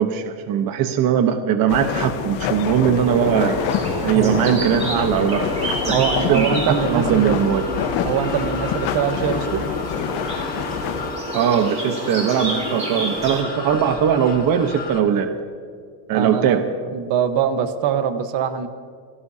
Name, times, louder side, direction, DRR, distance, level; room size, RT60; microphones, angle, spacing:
voice 1, 0.0-3.6 4.0-5.5 5.9-6.0 6.3-7.6 11.3-15.3 16.1-16.7, right 8 dB, 50° right, 6 dB, 1.1 m, -20 dB
sound 1, 1.7-11.1, left 9 dB, 75° left, 1.3 m, -27 dB
sound 2, 3.0-13.4, right 1 dB, 15° right, 3.3 m, -29 dB
voice 2, 4.0-4.4 5.9-7.4 8.0-9.6 16.1-16.6 16.9-18.7, right 8 dB, 70° right, 8 dB, 1.3 m, -23 dB
sound 3, 4.6-15.0, left 4 dB, 20° left, 1.8 m, -35 dB
28.0 x 18.0 x 2.8 m, 2.1 s
cardioid pair, 155°, 44 cm